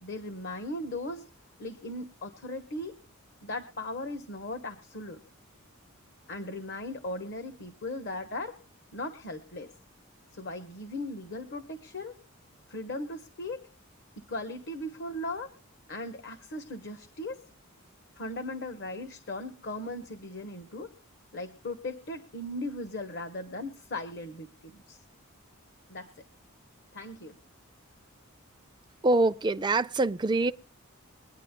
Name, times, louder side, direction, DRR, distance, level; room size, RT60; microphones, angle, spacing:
voice 1, 0.0-1.2 1.6-3.0 3.4-5.2 6.3-8.6 8.9-9.7 10.3-12.2 12.7-13.7 14.2-15.5 15.9-17.4 18.2-20.9 21.3-25.0 25.9-26.2 26.9-27.3, left 1 dB, 55° left, 1.1 m, -38 dB
voice 2, 29.0-30.5, right 2 dB, 20° right, 0.4 m, -24 dB
23.0 x 9.7 x 2.2 m
head